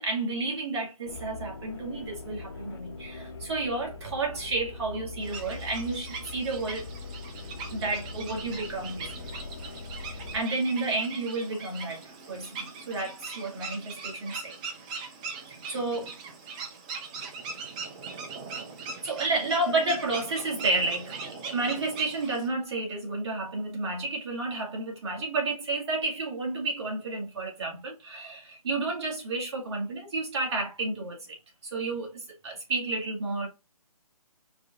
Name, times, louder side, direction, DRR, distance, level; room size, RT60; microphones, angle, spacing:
voice 1, 0.0-6.9 7.7-9.2 10.0-14.6 15.7-16.1 19.0-31.4 31.6-33.5, right 2 dB, 45° right, 2.0 m, -31 dB
sound 1, 1.1-10.4, left 3 dB, 40° left, 0.6 m, -42 dB
sound 2, 5.2-22.5, right 4 dB, 10° right, 0.4 m, -40 dB
4.7 x 2.6 x 3.6 m
figure-of-eight pair, 150°, 19 cm